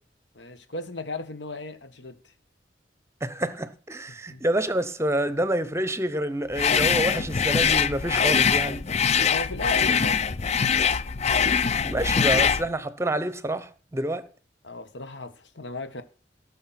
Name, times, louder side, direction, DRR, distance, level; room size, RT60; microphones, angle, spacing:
voice 1, 0.3-2.2 4.3-4.4 9.3-10.2 14.6-16.0, left 2 dB, 75° left, 1.6 m, -36 dB
voice 2, 3.2-8.9 11.8-14.3, right 1 dB, 15° right, 0.9 m, -28 dB
sound 1, 6.5-12.7, left 6 dB, 35° left, 0.5 m, -23 dB
17.0 x 6.5 x 5.9 m
head